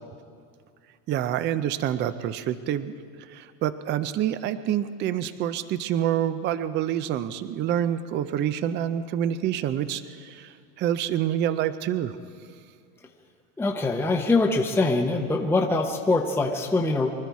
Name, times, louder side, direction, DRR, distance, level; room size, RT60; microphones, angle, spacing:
voice 1, 1.1-2.9 3.3-12.2, right 10 dB, 25° right, 13 dB, 0.4 m, -27 dB
voice 2, 13.6-17.1, left 3 dB, 5° left, 1 dB, 0.8 m, -23 dB
25.0 x 12.5 x 4.7 m, 2.2 s
supercardioid pair, 130°, 46 cm